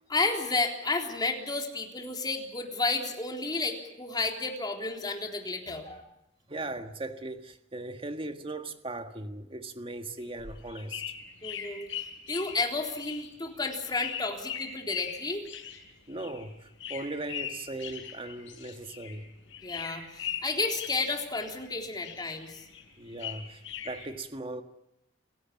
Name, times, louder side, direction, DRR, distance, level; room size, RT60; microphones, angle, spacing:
voice 1, 0.1-6.1 11.4-15.5 19.6-22.7, left 3 dB, 20° left, 3.7 m, -32 dB
voice 2, 6.5-11.0 16.1-19.3 23.0-24.6, right 2 dB, 30° right, 1.8 m, -38 dB
sound 1, 10.2-19.2 19.5-21.7 22.0-24.1, left 9 dB, 70° left, 7.6 m, -40 dB
29.5 x 16.5 x 8.5 m
head